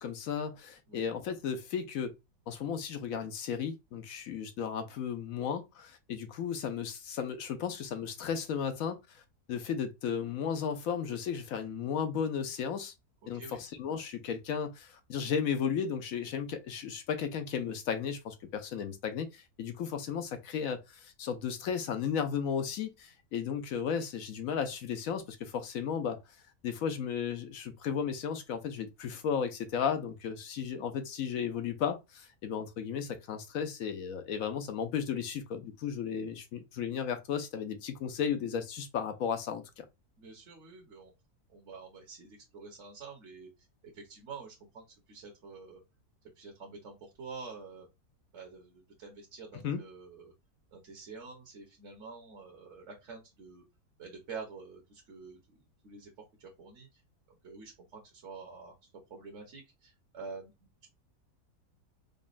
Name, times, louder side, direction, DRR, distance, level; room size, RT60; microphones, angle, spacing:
voice 1, 0.0-2.1 2.5-9.2 9.5-12.9 13.3-26.2 26.6-39.8 49.6-49.8, left 7 dB, 65° left, 1.0 m, -34 dB
voice 2, 13.3-13.6 40.2-41.1 41.5-43.5 43.9-45.8 46.3-47.9 48.3-50.3 50.7-53.6 54.0-56.1 56.4-57.0 57.3-60.9, right 4 dB, 50° right, 1.3 m, -48 dB
5.1 x 2.4 x 2.5 m
omnidirectional pair, 1.7 m